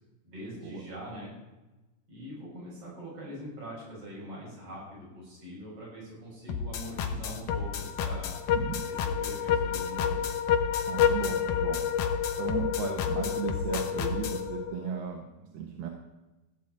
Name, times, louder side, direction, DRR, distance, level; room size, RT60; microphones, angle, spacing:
voice 1, 0.2-1.3 2.1-8.4 8.9-10.3, right 1 dB, 35° right, -5 dB, 7.6 m, -43 dB
sound 1, 6.5-14.4, left 6 dB, 65° left, 2.5 m, -33 dB
sound 2, 7.5-15.0, left 8 dB, 90° left, 1.7 m, -30 dB
voice 2, 8.5-8.9 10.9-11.8 12.4-15.9, right 7 dB, 75° right, 2 dB, 3.1 m, -36 dB
15.0 x 7.5 x 8.8 m, 1.1 s
omnidirectional pair, 4.5 m